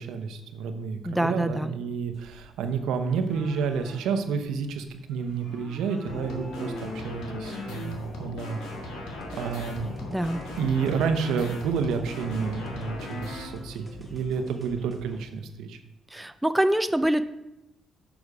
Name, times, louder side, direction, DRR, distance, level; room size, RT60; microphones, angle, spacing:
voice 1, 0.0-8.6 9.3-9.9 10.6-15.8, right 6 dB, 85° right, 8 dB, 0.8 m, -30 dB
voice 2, 1.1-1.7 10.1-10.4 16.1-17.2, right 1 dB, 5° right, 10 dB, 0.4 m, -25 dB
sound 1, 2.1-8.1, left 2 dB, 50° left, 2.6 m, -46 dB
sound 2, 6.1-13.4, left 1 dB, 85° left, 1.7 m, -38 dB
sound 3, 9.2-15.2, left 1 dB, 10° left, 1.7 m, -44 dB
6.7 x 6.0 x 4.8 m, 0.90 s
cardioid pair, 90°, 0 cm